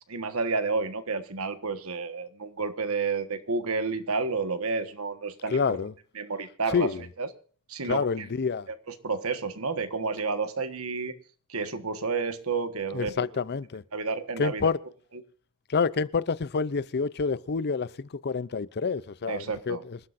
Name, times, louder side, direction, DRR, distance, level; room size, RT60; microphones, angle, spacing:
voice 1, 0.1-5.8 6.2-6.9 7.2-7.3 7.7-8.2 9.0-11.1 11.5-13.2 13.9-14.7 19.3-19.8, right 4 dB, 75° right, 1.5 m, -30 dB
voice 2, 5.5-5.9 6.7-7.0 7.8-8.7 12.9-13.8 14.4-14.8 15.7-20.0, left 5 dB, 50° left, 0.5 m, -28 dB
27.0 x 12.0 x 2.6 m
head